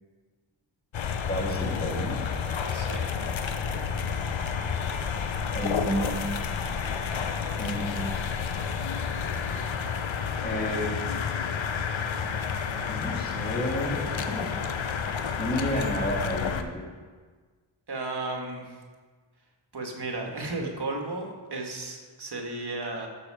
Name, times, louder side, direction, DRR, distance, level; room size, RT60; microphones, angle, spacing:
sound 1, 0.9-16.6, left 6 dB, 65° left, 0.8 m, -30 dB
voice 1, 1.2-2.2 5.5-6.2 7.6-8.2 10.4-11.2 12.9-14.5 15.4-16.8, equal, 20° left, -3 dB, 2.6 m, -31 dB
voice 2, 2.7-3.1 17.9-18.8 19.7-23.1, right 2 dB, 50° right, 1 dB, 1.8 m, -34 dB
13.5 x 6.6 x 4.9 m, 1.5 s
wide cardioid pair, 95°, 50 cm